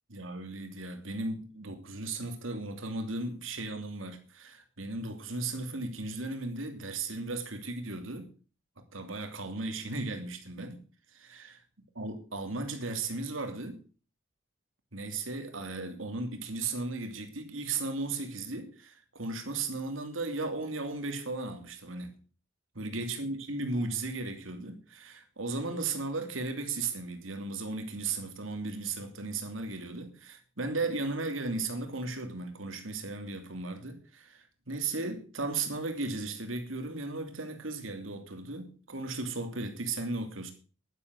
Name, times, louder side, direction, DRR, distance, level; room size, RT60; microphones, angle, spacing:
voice 1, 0.1-8.3 8.8-10.8 11.1-11.6 12.0-13.8 14.9-22.1 22.8-40.5, right 3 dB, 85° right, 2.9 m, -36 dB
11.0 x 10.5 x 6.3 m
head